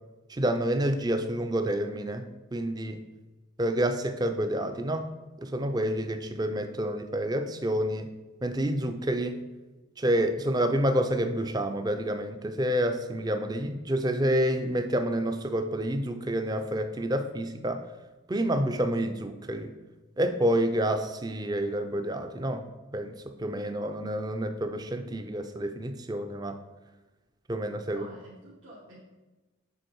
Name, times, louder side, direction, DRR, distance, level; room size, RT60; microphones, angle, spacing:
voice 1, 0.3-2.2 2.5-3.0 3.6-5.1 5.4-8.1 8.4-9.4 10.0-17.8 18.3-19.7 20.2-22.6 22.9-26.6 27.5-28.0, right 1 dB, 20° right, 7 dB, 0.4 m, -28 dB
voice 2, 27.8-29.0, right 1 dB, 80° right, -8 dB, 1.7 m, -49 dB
7.9 x 3.9 x 4.7 m, 1.2 s
head